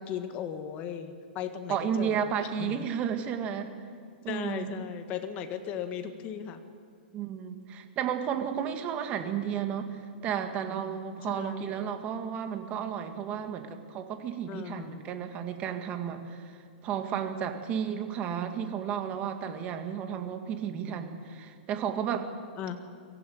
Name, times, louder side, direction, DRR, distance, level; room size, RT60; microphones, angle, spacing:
voice 1, 0.0-2.8 4.3-6.6 11.2-11.9 14.5-15.0 22.6-22.9, left 8 dB, 25° left, 7 dB, 1.7 m, -37 dB
voice 2, 1.7-3.7 4.2-4.7 7.1-16.6 16.8-22.3, right 8 dB, 25° right, 7 dB, 1.9 m, -33 dB
23.0 x 15.0 x 9.5 m, 2.3 s
hypercardioid pair, 160°, 6 cm